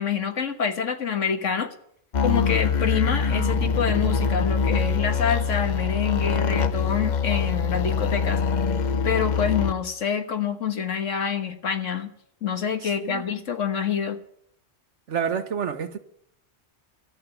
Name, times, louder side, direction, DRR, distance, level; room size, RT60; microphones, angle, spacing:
voice 1, 0.0-1.7 2.2-8.4 9.0-12.1 12.4-14.2, left 7 dB, 90° left, 1.7 m, -26 dB
sound 1, 2.1-9.7, left 5 dB, 45° left, 0.8 m, -24 dB
voice 2, 12.8-13.3 15.1-16.0, right 7 dB, 70° right, 1.4 m, -29 dB
13.0 x 9.1 x 9.6 m
omnidirectional pair, 1.2 m